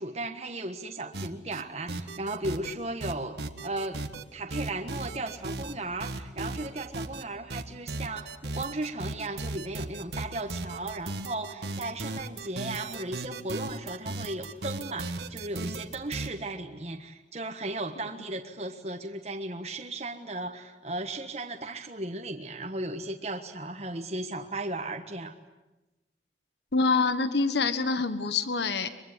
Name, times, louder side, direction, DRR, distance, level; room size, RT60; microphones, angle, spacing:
voice 1, 0.0-4.0 4.3-25.4, right 2 dB, 40° right, 4 dB, 1.4 m, -36 dB
sound 1, 1.1-1.6 1.9-2.7 3.0-4.2 4.5-5.7 6.0-7.2 7.5-16.3, right 2 dB, 75° right, 1.7 m, -36 dB
voice 2, 26.7-28.9, left 4 dB, 80° left, 11 dB, 1.4 m, -26 dB
24.0 x 23.0 x 9.8 m, 1.0 s
head